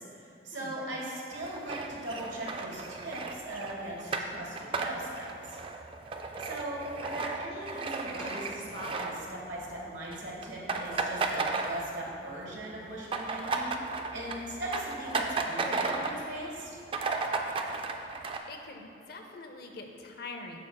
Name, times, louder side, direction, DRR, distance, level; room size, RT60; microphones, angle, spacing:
voice 1, 0.0-5.6 6.4-16.8, right 1 dB, 85° right, -3 dB, 1.4 m, -39 dB
sound 1, 1.3-9.7 10.0-10.2 10.4-12.2 12.5-16.3 16.6-16.7 16.9-18.4, right 3 dB, 30° right, 0.3 m, -34 dB
sound 2, 3.2-4.6 7.5-9.2 11.4-12.0 12.3-14.0, equal, 5° left, 1.4 m, -53 dB
voice 2, 18.5-20.6, left 3 dB, 55° left, 3 dB, 0.6 m, -44 dB
9.0 x 6.0 x 2.3 m, 2.7 s
head